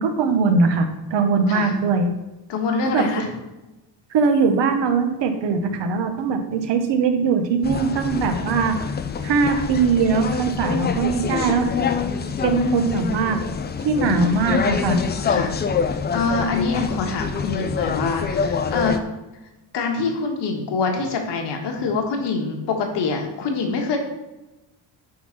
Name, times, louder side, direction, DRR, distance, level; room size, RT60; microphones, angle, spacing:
voice 1, 0.0-2.1 2.9-3.0 4.1-8.8 9.2-11.7 12.4-13.4 13.8-15.0, right 4 dB, 70° right, 6 dB, 1.2 m, -21 dB
voice 2, 2.5-3.3 14.0-14.6 15.2-15.5 16.1-19.0 19.7-24.0, left 4 dB, 65° left, 3 dB, 1.6 m, -25 dB
sound 1, 7.6-19.0, left 6 dB, 25° left, 0.3 m, -25 dB
9.3 x 3.8 x 5.9 m, 1.0 s
cardioid pair, 165°, 45 cm